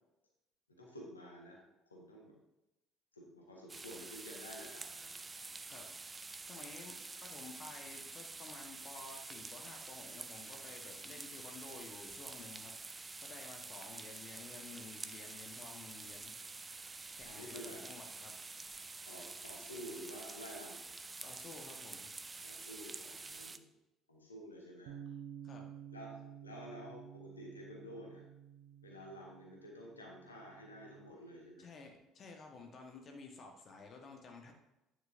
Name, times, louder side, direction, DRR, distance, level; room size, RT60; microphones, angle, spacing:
voice 1, 0.7-1.6 1.9-2.3 3.1-5.2 17.2-17.8 19.0-20.8 22.4-23.6 24.1-24.9 25.9-28.2 28.8-31.7, equal, 85° left, -2 dB, 1.6 m, -50 dB
sound 1, 3.7-23.6, right 3 dB, 20° right, 0.5 m, -48 dB
voice 2, 6.5-16.3 17.1-18.7 21.2-22.1 25.4-25.7 31.6-34.5, left 3 dB, 40° left, 2 dB, 1.4 m, -53 dB
Bass guitar, 24.9-31.1, right 9 dB, 60° right, 0.6 m, -52 dB
9.6 x 8.0 x 2.7 m, 0.93 s
figure-of-eight pair, 55°, 0 cm